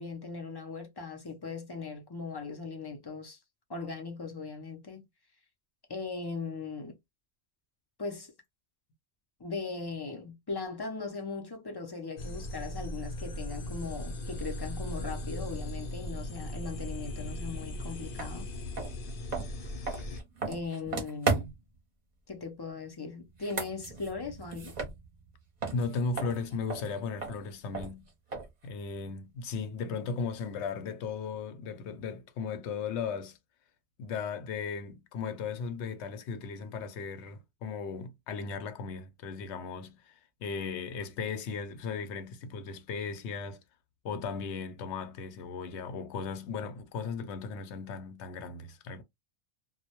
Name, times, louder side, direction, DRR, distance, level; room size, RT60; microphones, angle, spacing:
voice 1, 0.0-3.4 3.7-5.0 5.9-7.0 8.0-8.3 9.4-18.5 20.5-21.5 22.3-24.7, left 4 dB, 35° left, 0.4 m, -39 dB
sound 1, 12.2-20.2, left 1 dB, 60° left, 0.7 m, -38 dB
sound 2, 18.2-18.3 18.7-21.8 23.3-25.3 25.6-28.7, right 4 dB, 45° right, 0.7 m, -36 dB
voice 2, 25.7-28.1 28.6-33.4 34.0-43.6 44.0-49.0, left 5 dB, 90° left, 0.9 m, -36 dB
2.2 x 2.0 x 2.8 m
omnidirectional pair, 1.1 m